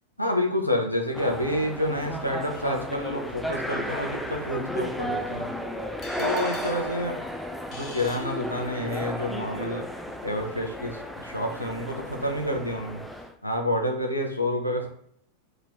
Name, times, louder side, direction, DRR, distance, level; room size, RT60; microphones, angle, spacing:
voice 1, 0.2-5.5 6.2-7.3 7.7-13.0 13.4-14.9, left 1 dB, 90° left, 2 dB, 0.6 m, -29 dB
sound 1, 1.1-13.3, left 1 dB, ahead, 0.3 m, -34 dB
sound 2, 6.0-9.0, left 3 dB, 35° left, 0.9 m, -44 dB
2.9 x 2.9 x 3.8 m, 0.64 s
figure-of-eight pair, 90°, 0 cm